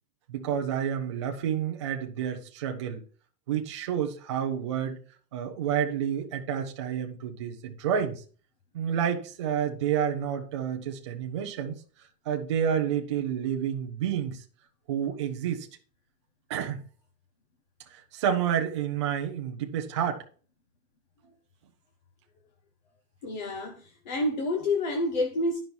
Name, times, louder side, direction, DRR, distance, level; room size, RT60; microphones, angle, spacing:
voice 1, 0.3-3.0 3.5-5.0 5.3-8.2 8.7-11.8 12.3-14.4 14.9-15.7 16.5-16.8 17.9-20.2, right 8 dB, 20° right, 0.4 m, -29 dB
voice 2, 23.2-25.6, left 2 dB, 30° left, 0.6 m, -28 dB
11.5 x 5.4 x 4.4 m
supercardioid pair, 175°, 49 cm